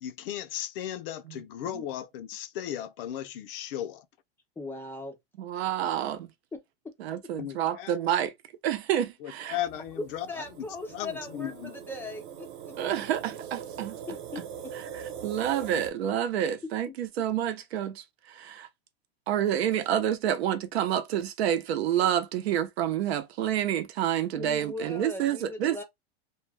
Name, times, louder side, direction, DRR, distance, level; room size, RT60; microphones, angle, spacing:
voice 1, 0.0-4.1 7.4-8.0 9.2-10.6 10.9-11.9, left 11 dB, 60° left, 0.5 m, -36 dB
voice 2, 4.6-5.2 5.6-5.7 6.5-6.6 10.0-12.7 14.1-14.7 24.3-25.8, left 2 dB, 5° left, 0.4 m, -39 dB
voice 3, 5.4-6.3 7.0-8.3 8.6-9.6 12.8-14.0 14.9-18.7 19.3-25.8, right 10 dB, 85° right, 0.7 m, -28 dB
sound 1, 9.5-15.9, right 8 dB, 50° right, 0.9 m, -42 dB
2.3 x 2.2 x 3.3 m
supercardioid pair, 145°, 31 cm